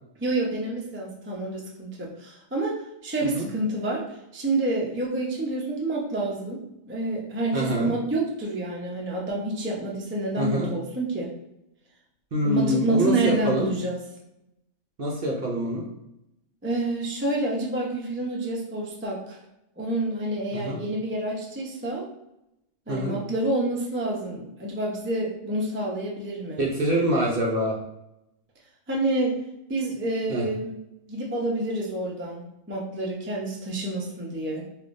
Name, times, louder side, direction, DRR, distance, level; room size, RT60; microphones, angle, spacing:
voice 1, 0.2-2.8 3.0-4.0 4.3-11.3 12.4-14.0 16.6-19.4 19.8-22.1 22.9-26.6 28.9-29.4 29.7-30.7 31.1-34.6, right 2 dB, 15° right, -2 dB, 0.4 m, -28 dB
voice 2, 7.5-7.9 10.4-10.7 12.3-13.7 15.0-15.8 20.5-20.8 22.9-23.2 26.6-27.7 30.3-30.5, right 1 dB, 50° right, -1 dB, 0.7 m, -25 dB
4.8 x 2.5 x 2.6 m, 0.86 s
omnidirectional pair, 1.5 m